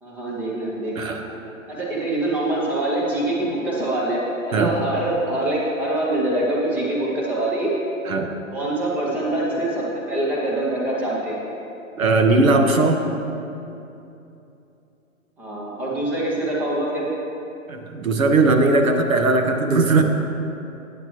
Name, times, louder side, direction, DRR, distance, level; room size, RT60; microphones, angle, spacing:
voice 1, 0.0-1.4 1.7-4.2 4.4-7.7 8.5-11.4 15.4-17.1, right 1 dB, 5° right, -4 dB, 0.5 m, -24 dB
voice 2, 0.9-1.3 4.5-4.8 8.0-8.3 12.0-13.1 17.7-20.0, right 3 dB, 75° right, 5 dB, 1.2 m, -18 dB
13.5 x 8.9 x 3.1 m, 2.8 s
hypercardioid pair, 135°, 41 cm